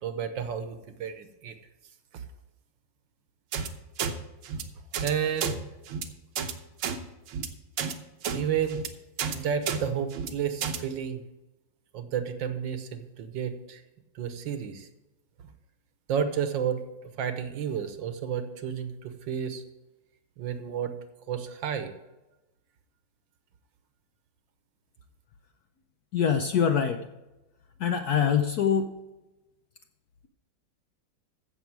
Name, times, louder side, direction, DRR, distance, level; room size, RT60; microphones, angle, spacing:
voice 1, 0.0-1.5 5.0-5.6 8.3-8.8 9.3-11.2 11.9-13.8 14.1-14.9 16.1-16.8 17.2-19.6 20.4-20.9 21.3-21.9, right 8 dB, 70° right, 9 dB, 1.5 m, -31 dB
sound 1, 3.5-3.7 4.0-4.1 4.4-4.6 4.9-5.1 5.4-5.5 5.9-6.0 6.4-6.5 6.8-7.0 7.3-7.5 7.8-7.9 8.2-8.4 8.7-8.9 9.2-9.4 9.7-9.8 10.1-10.3 10.6-10.8, right 7 dB, 90° right, 1.8 m, -30 dB
voice 2, 26.1-27.0 27.8-28.9, left 7 dB, 65° left, 6 dB, 1.0 m, -24 dB
15.0 x 6.6 x 4.7 m, 1.0 s
omnidirectional pair, 2.3 m